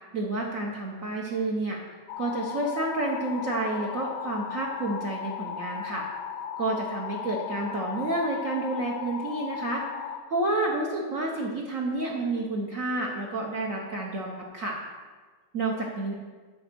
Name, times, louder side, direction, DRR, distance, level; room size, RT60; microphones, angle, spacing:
voice 1, 0.1-1.8 2.2-6.1 6.6-9.8 10.3-14.8 15.5-16.1, right 2 dB, 50° right, -2 dB, 1.1 m, -30 dB
sound 1, 2.1-10.2, left 8 dB, 80° left, 1.6 m, -36 dB
8.7 x 5.1 x 6.7 m, 1.4 s
omnidirectional pair, 2.2 m